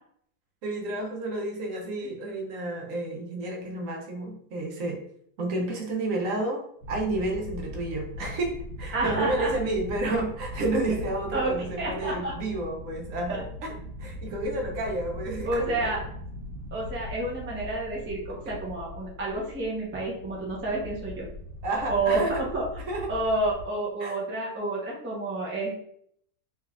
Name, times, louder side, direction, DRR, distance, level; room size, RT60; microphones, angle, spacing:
voice 1, 0.6-5.0 5.4-6.6 6.9-13.4 14.0-15.9 21.6-22.3 22.9-23.1 24.0-24.1, right 2 dB, 60° right, 0 dB, 1.1 m, -30 dB
sound 1, 6.8-23.6, left 1 dB, 80° right, 1.5 m, -40 dB
voice 2, 8.9-9.6 11.3-12.3 13.3-13.4 15.4-16.0 16.7-21.3 21.9-22.7 23.1-25.8, right 2 dB, 15° right, -4 dB, 0.4 m, -29 dB
3.4 x 3.2 x 2.3 m, 0.67 s
omnidirectional pair, 1.8 m